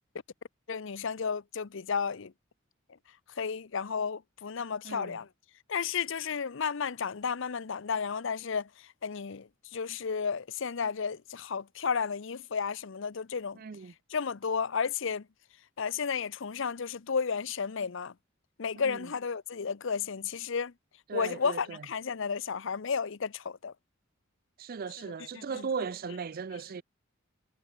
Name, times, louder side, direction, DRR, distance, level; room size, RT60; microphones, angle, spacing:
voice 1, 0.7-2.3 3.4-5.3 5.7-13.6 14.1-15.3 15.8-18.1 18.6-20.7 21.1-23.7 25.3-25.7, left 6 dB, 70° left, 0.7 m, -33 dB
voice 2, 4.8-5.2 13.5-13.9 18.8-19.1 21.1-21.9 24.6-26.8, right 5 dB, 45° right, 0.4 m, -37 dB
head